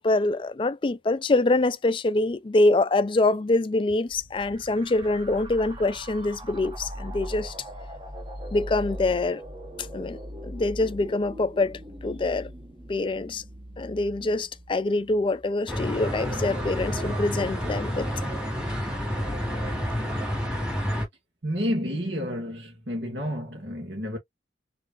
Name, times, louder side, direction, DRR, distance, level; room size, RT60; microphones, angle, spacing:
voice 1, 0.0-7.5 8.5-9.4 9.8-12.5 12.9-13.4 13.8-18.1, left 2 dB, 30° left, 0.3 m, -25 dB
sound 1, 4.1-15.4, equal, 25° right, 1.0 m, -40 dB
sound 2, 15.7-21.0, equal, 5° right, 2.1 m, -29 dB
voice 2, 21.4-24.2, equal, 65° right, 1.8 m, -30 dB
5.2 x 3.2 x 2.5 m
head